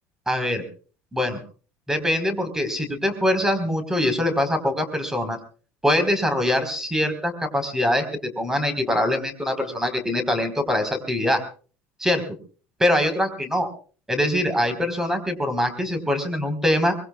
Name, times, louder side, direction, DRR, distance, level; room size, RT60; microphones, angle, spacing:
voice 1, 0.3-0.6 1.1-1.4 1.9-5.4 5.8-11.4 12.0-12.2 12.8-13.7 14.1-16.9, left 1 dB, 5° right, 7 dB, 4.3 m, -23 dB
25.0 x 21.5 x 2.4 m, 0.39 s
supercardioid pair, 95°, 7 cm